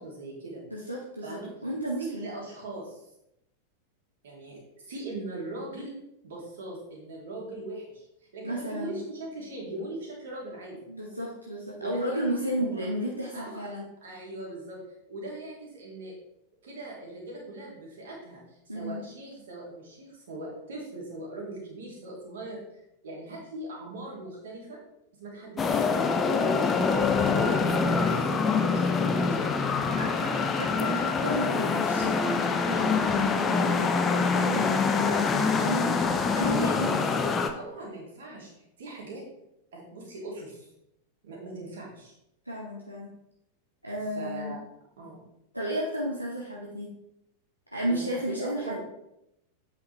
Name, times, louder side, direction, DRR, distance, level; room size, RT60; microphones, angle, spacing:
voice 1, 0.0-0.6 1.2-1.5 2.0-3.0 4.2-6.0 6.2-10.8 11.8-12.2 12.6-12.9 13.3-13.6 14.0-14.8 15.1-16.1 16.6-22.6 23.0-24.8 25.2-26.0 26.3-29.5 30.3-30.4 37.5-39.2 39.7-40.7 41.2-42.1 44.1-44.6 45.0-45.2 47.8-48.8, right 2 dB, 60° right, -3 dB, 2.7 m, -40 dB
voice 2, 0.7-2.3 8.4-8.9 10.9-13.8 18.7-19.0 28.0-28.9 30.0-37.1 42.4-43.1 43.8-44.5 45.5-46.9 47.7-48.8, equal, 90° right, -3 dB, 1.0 m, -33 dB
sound 1, 25.6-37.5, left 4 dB, 20° left, 0.7 m, -25 dB
7.9 x 5.7 x 3.3 m, 0.82 s
figure-of-eight pair, 90°, 0 cm